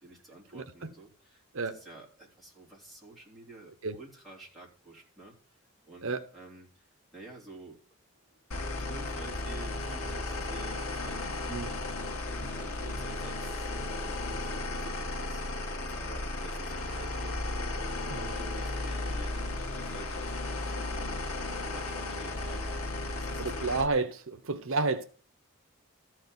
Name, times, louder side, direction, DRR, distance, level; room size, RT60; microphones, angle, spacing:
voice 1, 0.0-5.6 5.8-7.8 8.6-13.7 14.0-15.4 15.7-22.8 23.1-23.5, right 2 dB, ahead, 4.0 m, -51 dB
voice 2, 0.5-0.9 1.5-1.8 3.8-3.9 6.0-6.2 11.5-11.7 18.1-18.3 23.4-25.0, right 3 dB, 65° right, 0.9 m, -31 dB
sound 1, 8.5-23.9, left 2 dB, 85° left, 1.6 m, -35 dB
14.0 x 4.8 x 8.0 m
head